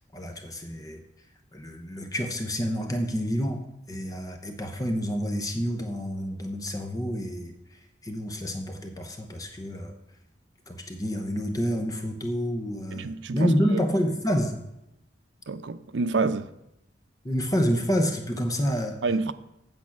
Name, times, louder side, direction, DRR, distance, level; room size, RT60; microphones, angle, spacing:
voice 1, 0.1-1.0 1.5-7.5 8.0-9.9 10.7-14.6 17.2-19.0, equal, 20° left, 0.8 m, -28 dB
voice 2, 12.9-13.8 15.5-16.5 19.0-19.3, right 3 dB, 80° right, 0.6 m, -28 dB
8.6 x 7.1 x 5.9 m
head